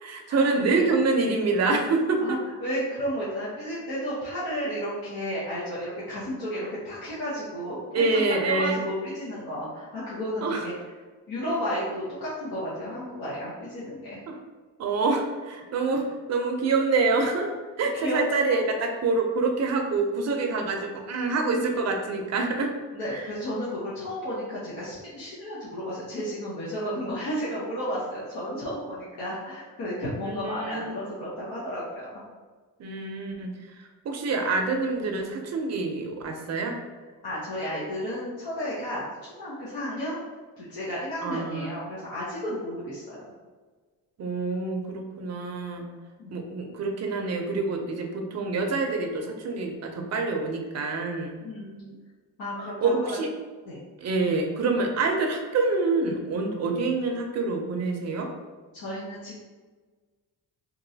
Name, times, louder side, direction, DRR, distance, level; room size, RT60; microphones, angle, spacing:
voice 1, 0.0-2.4 7.9-8.9 10.4-10.7 14.3-14.4 14.8-17.5 17.8-22.7 23.1-23.3 30.2-31.1 32.8-36.7 41.2-41.8 44.2-45.8 46.3-51.4 52.8-53.3 54.0-58.3, right 3 dB, 45° right, 3 dB, 0.5 m, -26 dB
voice 2, 2.2-10.7 11.3-14.2 18.0-18.2 22.9-32.1 37.2-40.2 40.6-43.3 46.2-46.3 51.4-51.9 52.4-53.2 53.7-53.8 58.7-59.4, equal, 80° left, -9 dB, 0.9 m, -33 dB
2.9 x 2.6 x 2.7 m, 1.4 s
cardioid pair, 120°, 36 cm